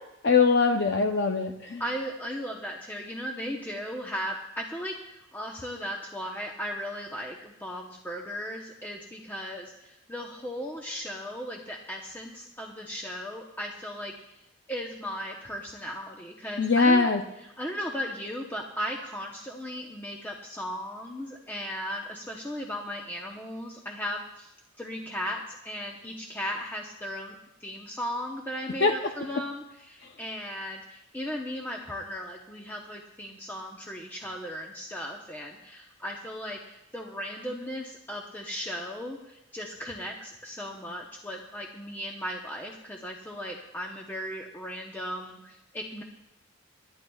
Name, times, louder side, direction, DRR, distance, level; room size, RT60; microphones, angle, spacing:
voice 1, 0.2-1.8 16.6-17.2 28.8-28.9, left 4 dB, 55° left, 3 dB, 0.6 m, -22 dB
voice 2, 1.8-14.4 14.7-17.1 17.4-27.3 27.6-46.0, equal, 10° left, -1 dB, 0.8 m, -36 dB
25.0 x 11.5 x 2.3 m, 0.90 s
head